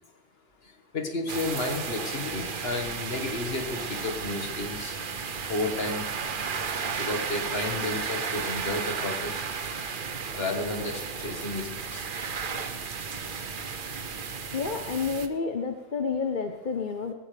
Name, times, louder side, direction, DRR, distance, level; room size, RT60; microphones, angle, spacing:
voice 1, 0.9-5.0 5.5-6.0 7.0-9.5 10.3-12.0, left 2 dB, 65° left, 3 dB, 2.0 m, -32 dB
sound 1, 1.3-15.3, right 5 dB, 55° right, 1.0 m, -33 dB
voice 2, 14.5-17.1, left 5 dB, 50° left, 5 dB, 1.1 m, -30 dB
18.0 x 15.5 x 3.5 m, 1.0 s
omnidirectional pair, 1.1 m